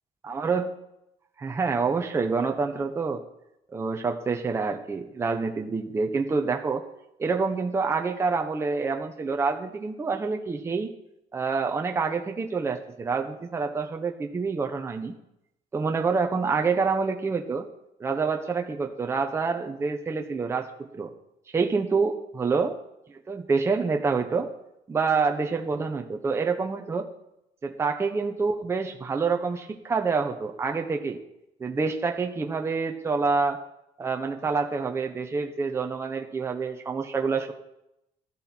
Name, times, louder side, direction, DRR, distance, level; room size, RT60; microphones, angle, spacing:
voice 1, 0.2-0.7 1.4-3.2 3.7-6.8 7.2-10.9 11.3-15.1 15.7-17.7 18.0-21.1 21.5-22.8 23.1-24.5 24.9-27.1 27.6-31.2 31.6-33.6 34.0-37.5, right 4 dB, 20° right, 4 dB, 0.9 m, -27 dB
13.5 x 12.5 x 4.4 m, 0.84 s
cardioid pair, 170°, 14 cm